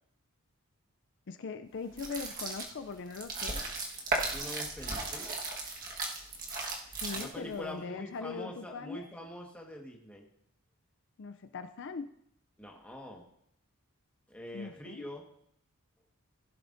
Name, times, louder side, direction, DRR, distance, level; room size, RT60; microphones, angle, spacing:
voice 1, 1.3-3.6 6.9-9.1 11.2-12.1 14.5-15.0, left 4 dB, 55° left, 8 dB, 0.4 m, -40 dB
sound 1, 1.9-7.6, right 2 dB, 40° right, 1.5 m, -36 dB
voice 2, 4.3-5.4 7.1-10.2 12.6-13.2 14.3-15.2, left 1 dB, 5° left, 0 dB, 1.4 m, -44 dB
16.0 x 11.0 x 2.6 m, 0.72 s
head